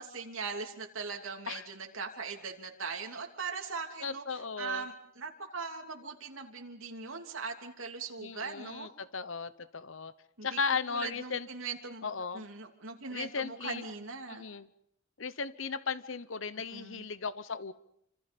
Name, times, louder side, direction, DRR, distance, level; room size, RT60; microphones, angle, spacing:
voice 1, 0.0-4.2 4.6-8.9 10.4-10.6 10.9-12.0 12.3-14.4 16.7-17.0, right 5 dB, 75° right, 3 dB, 3.0 m, -40 dB
voice 2, 4.0-4.9 8.2-10.1 10.4-11.5 12.0-12.5 13.1-13.8 14.3-14.7 15.2-17.7, left 5 dB, 70° left, 15 dB, 1.0 m, -36 dB
28.5 x 26.0 x 5.4 m, 0.71 s
head